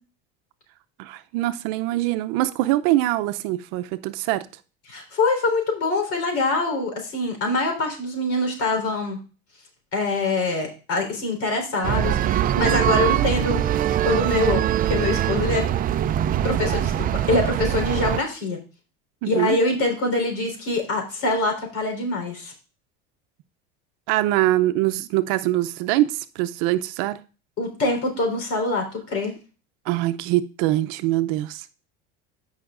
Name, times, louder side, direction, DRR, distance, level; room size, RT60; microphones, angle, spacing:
voice 1, 1.0-4.5 19.2-19.6 24.1-27.2 29.9-31.6, right 15 dB, 70° right, 0.7 m, -23 dB
voice 2, 4.9-9.2 9.9-13.6 14.0-15.6 16.4-18.6 19.2-22.5 27.6-29.3, left 2 dB, 50° left, 4.0 m, -24 dB
sound 1, 11.8-18.2, right 11 dB, 30° right, 0.4 m, -22 dB
13.5 x 5.7 x 2.5 m
supercardioid pair, 120°, 30 cm